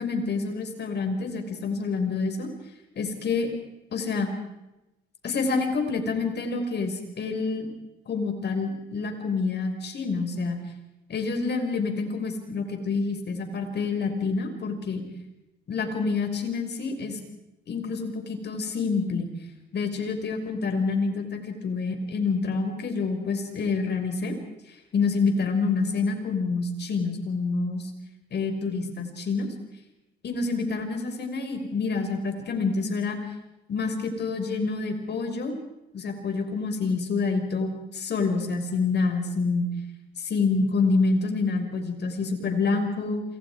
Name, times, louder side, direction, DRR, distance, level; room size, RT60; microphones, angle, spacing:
voice 1, 0.0-2.5 3.0-3.5 3.9-4.3 5.2-7.7 8.1-10.6 11.1-15.0 15.7-17.2 17.7-19.3 19.7-24.4 24.9-27.9 28.3-29.5 30.2-33.2 33.7-35.6 35.9-39.7 40.2-43.2, left 4 dB, 60° left, 5 dB, 5.6 m, -27 dB
28.0 x 27.0 x 4.9 m, 0.96 s
cardioid pair, 90°, 20 cm